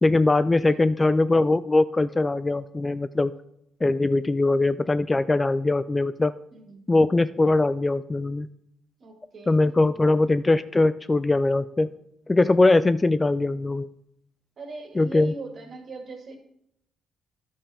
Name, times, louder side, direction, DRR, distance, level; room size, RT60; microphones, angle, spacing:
voice 1, 0.0-3.3 3.8-6.3 6.9-8.5 9.5-11.9 12.3-13.9 15.0-15.3, left 2 dB, 20° left, 14 dB, 0.3 m, -21 dB
voice 2, 6.5-6.8 9.0-10.3 14.6-16.4, right 3 dB, 50° right, 3 dB, 2.1 m, -41 dB
11.0 x 5.5 x 4.3 m, 0.76 s
cardioid pair, 90°, 0 cm